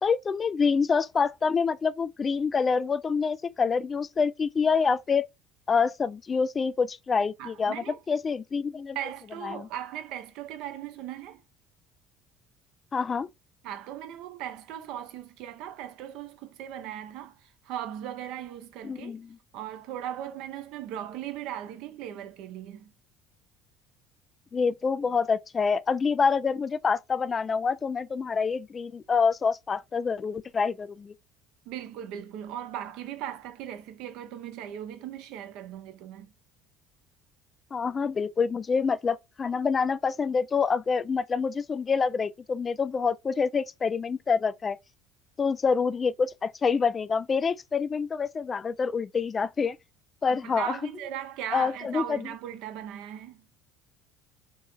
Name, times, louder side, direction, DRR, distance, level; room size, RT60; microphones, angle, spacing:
voice 1, 0.0-5.3 5.7-9.0 9.4-9.7 12.9-13.3 18.8-19.4 24.5-31.1 37.7-44.8 45.4-49.8 50.2-50.8 51.5-52.3, left 5 dB, 30° left, 0.3 m, -26 dB
voice 2, 7.4-8.0 8.9-11.4 13.6-19.2 19.5-22.9 31.7-36.3 50.3-53.4, right 11 dB, 60° right, 0.8 m, -38 dB
3.9 x 3.8 x 2.4 m
figure-of-eight pair, 60°, 0 cm